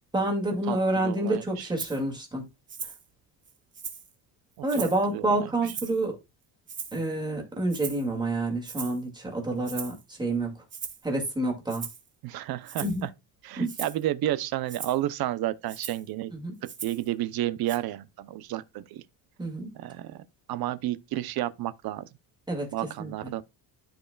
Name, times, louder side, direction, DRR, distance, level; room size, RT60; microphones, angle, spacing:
voice 1, 0.1-2.5 4.6-6.1 6.9-10.5 11.0-11.8 12.8-13.0 13.6-13.7 16.3-16.5 19.4-19.7 22.5-22.7 23.0-23.3, right 2 dB, 10° right, 2.2 m, -28 dB
voice 2, 0.7-1.7 4.6-5.5 12.2-13.1 13.4-16.3 16.6-19.0 19.7-20.2 20.5-22.0 22.7-23.4, right 14 dB, 55° right, 0.7 m, -31 dB
Rattle (instrument), 1.8-2.0 2.7-3.0 3.4-4.1 4.7-5.0 5.6-6.0 6.7-7.1 7.7-8.1 8.6-9.0 9.6-10.0 10.7-11.0 11.7-12.1 12.6-13.0 13.6-14.0 14.7-15.0 15.7-16.1 16.6-17.1 17.7-17.8, right 6 dB, 25° right, 1.2 m, -39 dB
13.5 x 4.8 x 2.3 m
cardioid pair, 175°, 46 cm